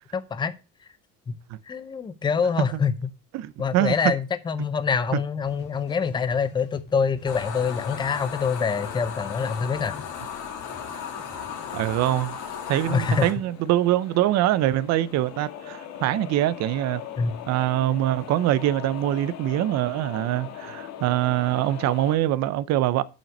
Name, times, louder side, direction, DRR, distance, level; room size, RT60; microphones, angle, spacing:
voice 1, 0.1-0.5 1.3-1.4 1.7-3.0 3.6-10.0 12.9-13.3 17.2-17.3, left 6 dB, 15° left, 0.5 m, -25 dB
voice 2, 3.3-4.1 11.7-12.4 12.7-17.0 17.5-23.0, right 14 dB, 55° right, 0.7 m, -24 dB
sound 1, 5.4-12.3, left 4 dB, 30° left, 2.2 m, -50 dB
sound 2, 7.3-13.3, left 7 dB, 70° left, 2.4 m, -35 dB
sound 3, 10.0-22.2, left 10 dB, 55° left, 1.6 m, -41 dB
7.4 x 5.6 x 6.4 m
cardioid pair, 170°, 32 cm